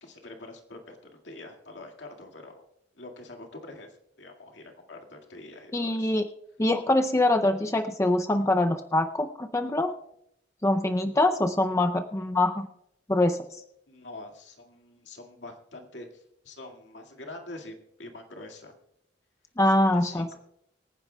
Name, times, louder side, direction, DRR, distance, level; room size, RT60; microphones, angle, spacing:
voice 1, 0.0-2.7 2.9-6.2 13.9-18.7 19.6-20.4, left 2 dB, 80° left, 2 dB, 2.1 m, -45 dB
voice 2, 5.7-6.2 6.6-9.9 10.6-12.7 13.1-13.6 19.6-20.4, left 1 dB, 15° left, 6 dB, 0.5 m, -24 dB
25.0 x 10.0 x 2.3 m, 0.75 s
head